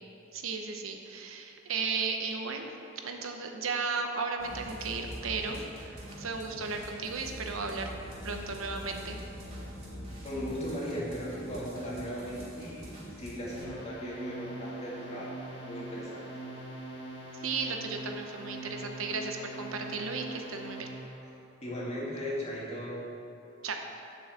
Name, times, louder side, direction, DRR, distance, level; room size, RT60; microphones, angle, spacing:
voice 1, 0.3-2.7 3.0-7.9 8.2-9.2 17.4-20.9 23.6-23.8, right 4 dB, 85° right, 4 dB, 0.9 m, -35 dB
sound 1, 4.4-13.6, equal, 30° right, 2.2 m, -44 dB
voice 2, 10.2-12.9 13.2-16.3 21.3-23.0, equal, 30° left, -6 dB, 2.2 m, -37 dB
sound 2, 13.6-21.1, right 1 dB, 50° left, 1.8 m, -43 dB
7.2 x 6.2 x 7.5 m, 2.8 s
head